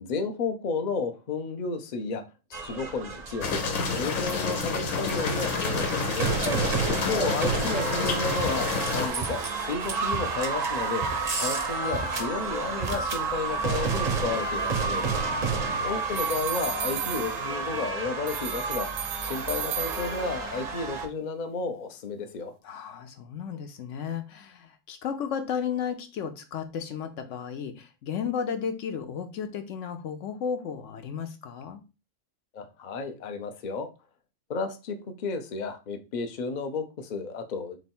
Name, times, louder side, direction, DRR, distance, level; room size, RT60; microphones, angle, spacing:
voice 1, 0.0-2.2 2.5-3.6 3.9-6.3 6.8-11.0 11.4-15.1 15.8-18.9 19.2-22.5 32.5-33.9 34.5-37.8, left 4 dB, 50° left, 0.5 m, -32 dB
sound 1, 2.5-21.1, right 4 dB, 45° right, 0.6 m, -30 dB
sound 2, 3.4-9.1, left 4 dB, 90° left, 1.2 m, -29 dB
voice 2, 15.1-15.9 22.6-31.8, left 7 dB, 70° left, 0.9 m, -34 dB
sound 3, 16.1-17.8 18.3-20.5, right 10 dB, 70° right, 0.9 m, -35 dB
3.3 x 3.1 x 4.2 m
omnidirectional pair, 1.4 m